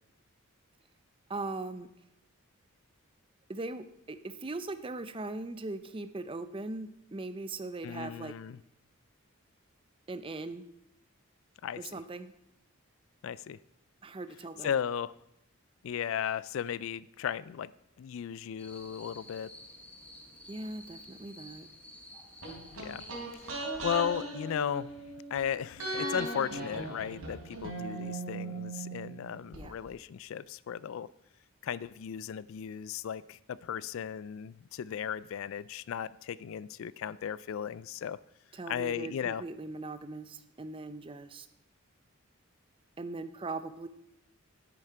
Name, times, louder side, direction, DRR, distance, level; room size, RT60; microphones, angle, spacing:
voice 1, 1.3-1.9 3.5-8.4 10.1-10.6 11.8-12.3 14.0-14.7 20.5-21.7 29.5-29.8 38.5-41.5 43.0-43.9, right 2 dB, 25° right, 12 dB, 0.5 m, -40 dB
voice 2, 7.8-8.6 11.6-11.8 13.2-13.6 14.6-15.1 15.8-17.7 18.0-19.5 22.8-23.0 23.6-25.0 25.3-31.1 31.6-38.2 38.7-39.4, left 8 dB, 65° left, 20 dB, 0.3 m, -35 dB
sound 1, 18.6-23.6, left 1 dB, 5° left, 1.2 m, -51 dB
sound 2, 22.4-25.4 25.8-29.6 29.9-30.0, right 2 dB, 70° right, 3.6 m, -38 dB
10.0 x 8.6 x 4.9 m, 0.79 s
head